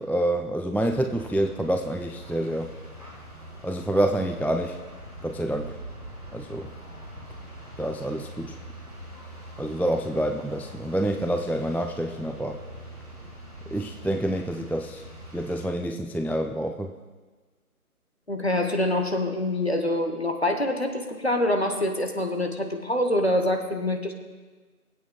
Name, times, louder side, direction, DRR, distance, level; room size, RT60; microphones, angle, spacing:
voice 1, 0.0-2.7 3.6-4.8 5.2-5.8 6.3-6.7 7.8-8.6 9.6-12.6 13.7-15.0 15.3-16.9, right 1 dB, 5° left, 5 dB, 0.3 m, -27 dB
sound 1, 0.7-15.7, equal, 25° right, 1.6 m, -43 dB
voice 2, 18.3-24.1, left 1 dB, 45° left, 4 dB, 1.0 m, -25 dB
20.0 x 8.5 x 2.3 m, 1.4 s
figure-of-eight pair, 170°, 45 cm